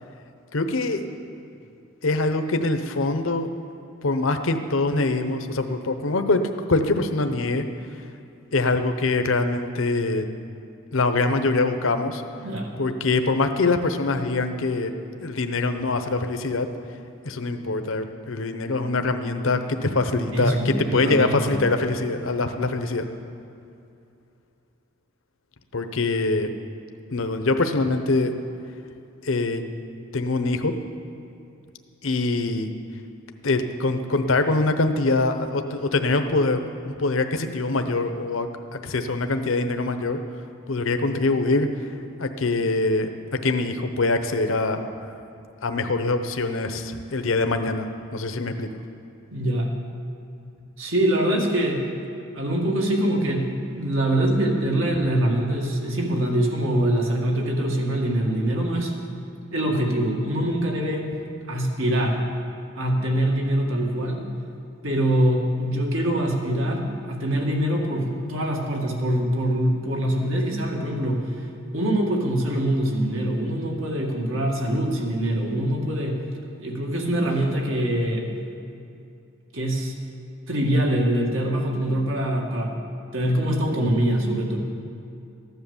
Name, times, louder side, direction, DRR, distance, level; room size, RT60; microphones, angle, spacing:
voice 1, 0.5-1.0 2.0-3.5 4.0-6.4 6.7-7.6 8.5-10.2 10.9-12.2 12.8-14.9 15.2-16.7 17.2-23.1 25.7-26.5 27.1-28.3 29.2-29.6 30.1-30.8 32.0-32.7 33.4-40.2 40.7-41.7 42.2-43.1 43.4-44.8 45.6-48.7, left 3 dB, 75° left, 7 dB, 0.9 m, -24 dB
voice 2, 20.3-21.6 49.3-49.7 50.8-51.8 52.3-58.9 59.5-61.1 61.5-62.2 62.8-64.2 64.8-71.2 71.7-76.2 76.6-78.3 79.5-79.9 80.5-82.7 83.1-84.6, right 1 dB, 75° right, 0 dB, 2.1 m, -24 dB
14.5 x 10.5 x 7.2 m, 2.6 s
head